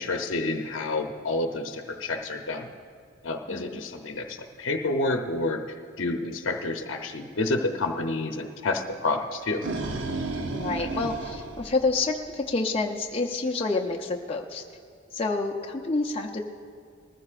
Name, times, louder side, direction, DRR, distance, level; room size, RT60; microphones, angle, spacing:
voice 1, 0.0-2.7 3.2-5.6 6.0-9.6, left 2 dB, 80° left, 4 dB, 0.8 m, -29 dB
voice 2, 3.5-3.8 10.5-14.6 15.1-16.4, left 3 dB, 30° left, 1 dB, 0.6 m, -28 dB
sound 1, 9.3-12.5, right 2 dB, 65° right, 0.8 m, -33 dB
20.0 x 14.5 x 2.5 m, 2.3 s
head